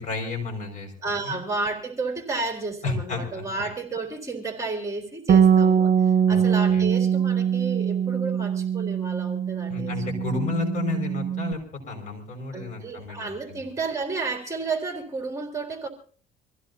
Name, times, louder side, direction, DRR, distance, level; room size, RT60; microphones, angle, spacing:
voice 1, 0.0-0.9 1.2-1.4 2.8-3.6 6.3-6.4 6.7-6.8 9.7-11.6 11.9-13.6, left 3 dB, 45° left, 6.1 m, -31 dB
voice 2, 1.0-5.9 6.3-9.9 12.5-15.9, right 3 dB, 20° right, 3.7 m, -32 dB
Bass guitar, 5.3-11.5, right 8 dB, 55° right, 0.9 m, -22 dB
25.5 x 16.0 x 2.8 m
cardioid pair, 110°, 17 cm